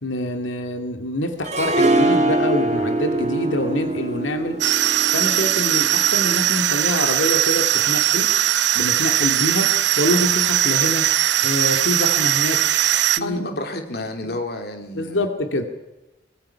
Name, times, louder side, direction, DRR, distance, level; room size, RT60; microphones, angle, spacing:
voice 1, 0.0-4.6 5.1-8.3 8.7-11.1 11.4-12.6 13.2-13.4 14.2-14.3 14.9-15.6, left 1 dB, 85° left, 6 dB, 2.3 m, -25 dB
Harp, 1.4-6.5, right 2 dB, 35° right, 2.0 m, -23 dB
sound 1, 4.6-13.2, right 12 dB, 70° right, 0.8 m, -19 dB
voice 2, 13.2-15.3, left 1 dB, 55° left, 5 dB, 2.8 m, -30 dB
24.0 x 22.5 x 5.7 m, 0.99 s
head